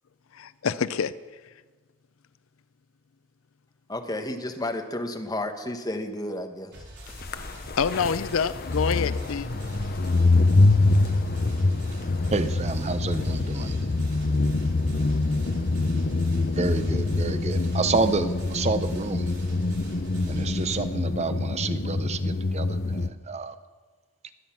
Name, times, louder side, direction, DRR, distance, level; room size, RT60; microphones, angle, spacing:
voice 1, 0.3-1.2 7.8-9.5, left 6 dB, 80° left, 16 dB, 0.5 m, -26 dB
voice 2, 3.9-6.7, left 1 dB, 20° left, 5 dB, 1.2 m, -32 dB
sound 1, 6.7-20.8, equal, 55° right, 4.6 m, -44 dB
sound 2, 7.2-23.1, left 2 dB, 45° left, 0.8 m, -25 dB
voice 3, 12.3-13.7 16.6-19.4 20.3-23.5, right 3 dB, 30° right, 11 dB, 0.6 m, -29 dB
22.0 x 9.2 x 6.0 m, 1.4 s
head